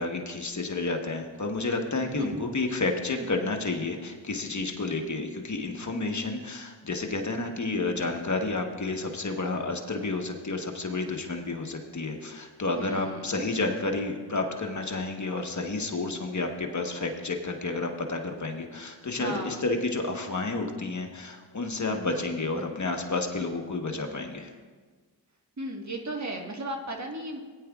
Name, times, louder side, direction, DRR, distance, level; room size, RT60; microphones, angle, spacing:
voice 1, 0.0-24.5, left 3 dB, 40° left, 3 dB, 1.2 m, -30 dB
voice 2, 2.0-2.4 3.1-3.5 12.7-13.4 19.2-19.6 25.6-27.4, right 1 dB, 40° right, 1 dB, 1.5 m, -36 dB
18.0 x 9.8 x 2.4 m, 1.5 s
cardioid pair, 60°, 42 cm